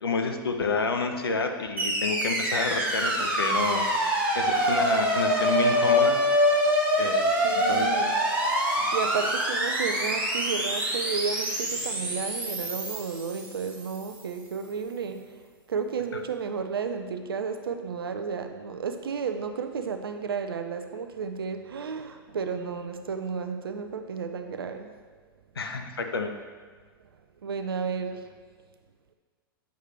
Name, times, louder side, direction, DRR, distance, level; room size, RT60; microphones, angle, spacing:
voice 1, 0.0-3.9 4.3-6.2 7.0-7.2 7.5-7.9 25.6-26.3, left 4 dB, 85° left, 5 dB, 0.8 m, -29 dB
sound 1, 1.8-14.0, equal, 10° right, 2.5 m, -25 dB
voice 2, 7.4-8.2 8.7-15.4 15.7-24.9 27.4-28.3, right 6 dB, 80° right, 7 dB, 0.6 m, -32 dB
9.1 x 6.4 x 3.3 m, 1.5 s
hypercardioid pair, 105°, 12 cm